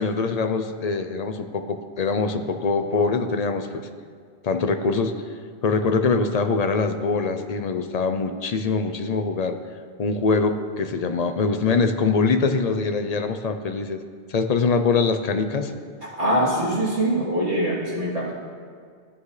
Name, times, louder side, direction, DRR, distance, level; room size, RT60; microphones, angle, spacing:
voice 1, 0.0-3.9 4.4-5.1 5.6-9.6 10.0-14.0 14.3-15.7, left 4 dB, 45° left, 7 dB, 0.6 m, -23 dB
voice 2, 16.2-18.3, right 1 dB, 45° right, -9 dB, 3.4 m, -23 dB
15.5 x 9.4 x 3.3 m, 2.1 s
omnidirectional pair, 1.1 m